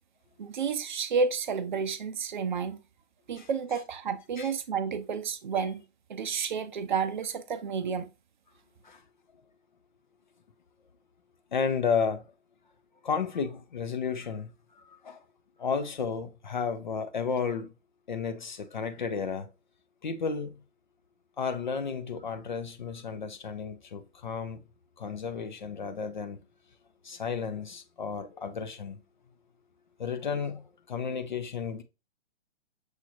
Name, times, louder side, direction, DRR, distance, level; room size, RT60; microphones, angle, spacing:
voice 1, 0.4-2.8 3.3-5.8 6.1-8.1, right 5 dB, 40° right, 0.5 m, -31 dB
voice 2, 11.5-12.3 13.0-14.5 14.8-15.2 15.6-17.7 18.1-19.5 20.0-20.6 21.4-24.6 25.0-26.4 27.0-29.0 30.0-31.8, left 6 dB, 40° left, 0.5 m, -32 dB
6.3 x 2.7 x 2.5 m
figure-of-eight pair, 130°, 37 cm